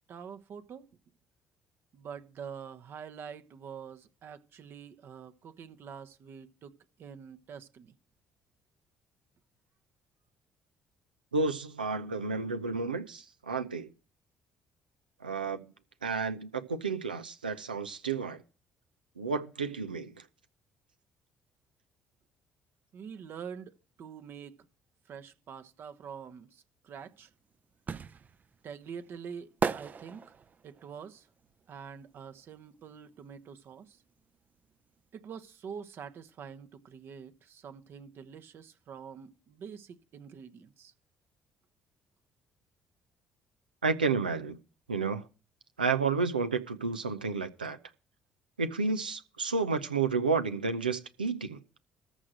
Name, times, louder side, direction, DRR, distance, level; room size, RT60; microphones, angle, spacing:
voice 1, 0.1-0.8 1.9-6.7 7.0-7.9 22.9-24.6 25.1-27.3 28.6-30.3 30.6-31.3 31.7-34.0 35.1-40.9, right 7 dB, 55° right, 1.0 m, -46 dB
voice 2, 11.3-13.9 15.2-15.7 16.0-18.4 19.2-20.2 43.8-44.6 44.9-45.2 45.8-47.8 48.6-51.6, right 4 dB, 90° right, 0.7 m, -31 dB
sound 1, 27.0-32.8 33.1-34.7 35.0-35.1, right 5 dB, 35° right, 0.6 m, -37 dB
14.0 x 4.9 x 7.7 m
figure-of-eight pair, 50°, 5 cm